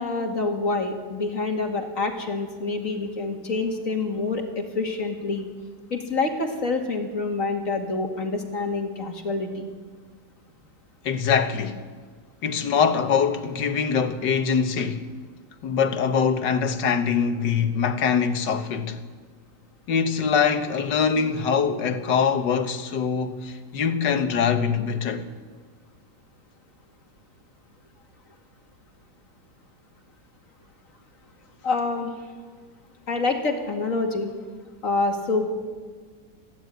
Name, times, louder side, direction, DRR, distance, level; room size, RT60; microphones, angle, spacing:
voice 1, 0.0-5.5 5.9-9.7 31.6-32.1 33.1-34.3 34.8-35.5, left 3 dB, 50° left, 2.5 m, -27 dB
voice 2, 11.0-11.9 12.4-15.1 15.6-19.0 19.9-25.3, left 6 dB, 80° left, 1.9 m, -23 dB
20.5 x 15.5 x 9.2 m
omnidirectional pair, 1.9 m